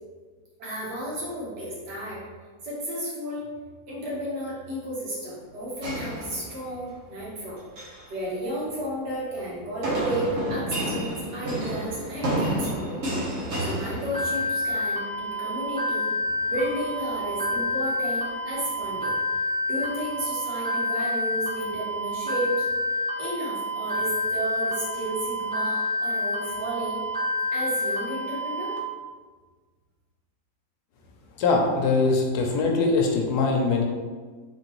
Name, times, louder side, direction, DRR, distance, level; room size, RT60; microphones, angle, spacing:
voice 1, 0.6-2.2 2.6-3.5 3.9-7.6 8.1-13.0 13.6-16.1 16.4-19.1 19.7-22.5 23.2-27.0 27.5-28.8, right 1 dB, 80° right, -6 dB, 1.8 m, -33 dB
sound 1, 5.8-6.9 7.6-8.1 9.8-14.7, right 1 dB, 55° right, 1.2 m, -30 dB
sound 2, 14.1-28.8, left 2 dB, 10° left, 0.3 m, -28 dB
voice 2, 31.4-33.8, left 3 dB, 75° left, 1 dB, 1.1 m, -22 dB
3.7 x 3.6 x 3.0 m, 1.4 s
omnidirectional pair, 1.8 m